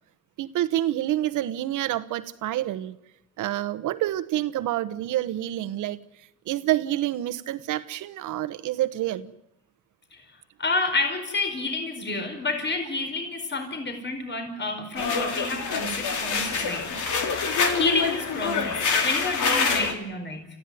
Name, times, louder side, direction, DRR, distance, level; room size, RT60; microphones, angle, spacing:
voice 1, 0.4-3.0 3.4-6.0 6.4-9.3, right 13 dB, 85° right, 1.3 m, -28 dB
voice 2, 10.6-20.5, left 3 dB, 35° left, 4.8 m, -29 dB
sound 1, 15.0-19.9, left 5 dB, 75° left, 3.5 m, -26 dB
29.0 x 15.0 x 9.4 m
cardioid pair, 90°, 30 cm